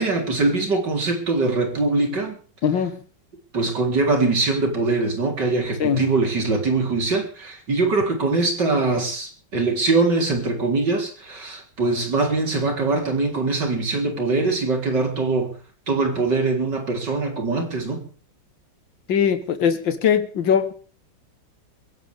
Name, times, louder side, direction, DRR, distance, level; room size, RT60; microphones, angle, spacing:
voice 1, 0.0-2.4 3.5-15.5 15.9-18.0, right 3 dB, 65° right, 2 dB, 4.7 m, -22 dB
voice 2, 2.6-3.0 5.8-6.0 19.1-20.7, left 8 dB, 80° left, 9 dB, 2.3 m, -21 dB
22.5 x 17.0 x 3.6 m, 0.40 s
omnidirectional pair, 2.0 m